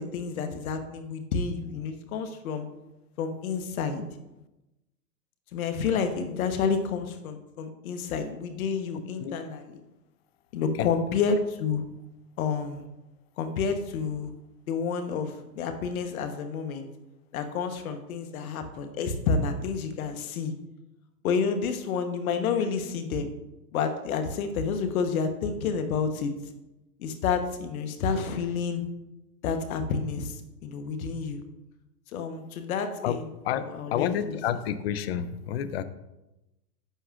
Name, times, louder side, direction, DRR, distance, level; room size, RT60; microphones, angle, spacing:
voice 1, 0.0-2.7 3.2-4.0 5.5-9.8 10.5-11.8 12.4-12.9 13.4-14.3 14.7-16.9 17.3-20.5 21.2-23.3 23.7-26.3 27.0-28.8 29.4-31.4 32.1-34.4, left 5 dB, 60° left, 8 dB, 1.2 m, -29 dB
voice 2, 33.9-35.8, left 9 dB, 40° left, 13 dB, 0.5 m, -29 dB
11.0 x 6.9 x 2.5 m, 0.97 s
hypercardioid pair, 140°, 49 cm